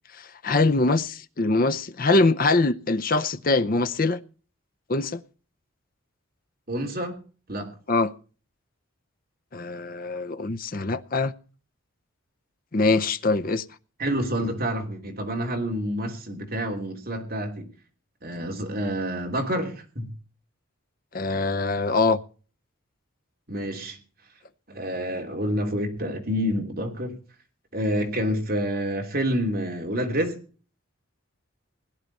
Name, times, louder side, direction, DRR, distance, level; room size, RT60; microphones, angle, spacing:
voice 1, 0.1-4.2 4.9-5.2 7.9-8.1 9.5-11.3 12.7-13.7 21.1-22.2, left 3 dB, 40° left, 0.7 m, -23 dB
voice 2, 6.7-7.2 7.5-7.7 14.0-17.7 18.2-20.1 23.5-24.0 24.7-27.2 27.7-30.4, equal, 45° right, 3.0 m, -28 dB
17.5 x 11.0 x 4.1 m
head